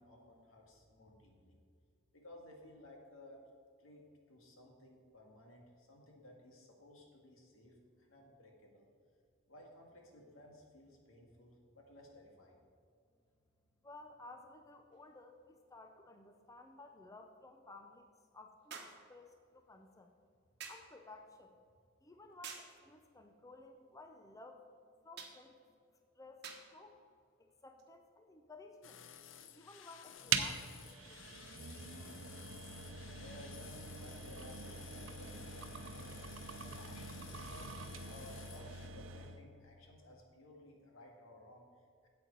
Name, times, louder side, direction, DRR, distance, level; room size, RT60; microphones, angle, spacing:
voice 1, 0.0-1.6 2.1-3.4 3.8-8.9 9.5-12.6 33.1-36.2 36.5-42.1, left 1 dB, 85° left, 0 dB, 1.8 m, -57 dB
voice 2, 13.8-18.1 18.3-18.8 19.1-20.1 20.7-21.6 22.0-24.7 25.0-25.5 26.2-26.4 26.7-27.0 27.4-29.0 29.5-31.5, left 2 dB, 15° left, 5 dB, 0.5 m, -56 dB
sound 1, 14.9-15.0 18.7-19.1 20.6-20.9 22.4-22.8 25.2-25.4 26.4-26.7 27.8-27.9, right 6 dB, 55° right, 1.1 m, -48 dB
sound 2, 28.8-38.9, left 9 dB, 70° left, 0.6 m, -55 dB
sound 3, 30.3-39.4, right 6 dB, 75° right, 0.7 m, -43 dB
8.8 x 7.7 x 5.2 m, 2.3 s
head